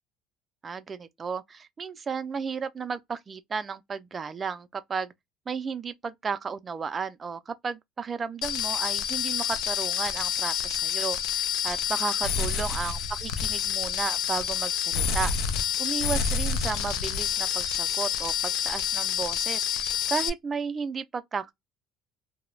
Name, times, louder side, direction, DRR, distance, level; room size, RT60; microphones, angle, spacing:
voice 1, 0.6-5.1 5.5-15.3 15.8-21.5, right 5 dB, 20° right, 0.3 m, -34 dB
sound 1, 8.4-20.3, left 8 dB, 75° left, 0.4 m, -28 dB
2.3 x 2.0 x 3.0 m
cardioid pair, 155°, 0 cm